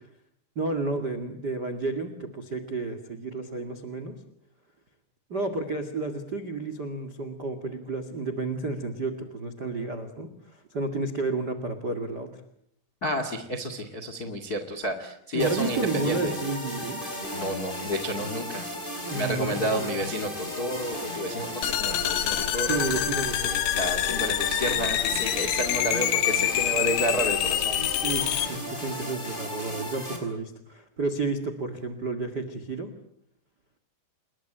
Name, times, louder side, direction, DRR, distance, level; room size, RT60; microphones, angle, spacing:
voice 1, 0.5-4.1 5.3-12.4 15.3-17.0 19.0-19.9 22.4-23.6 28.0-32.9, right 3 dB, 60° right, 10 dB, 1.0 m, -31 dB
voice 2, 13.0-16.3 17.3-18.8 19.1-22.8 23.7-27.8, equal, 50° left, 8 dB, 1.1 m, -30 dB
sound 1, 15.4-30.2, left 1 dB, 10° left, 5.2 m, -35 dB
sound 2, 21.6-28.5, left 13 dB, 80° left, 3.8 m, -26 dB
29.0 x 22.0 x 9.0 m, 0.72 s
omnidirectional pair, 5.8 m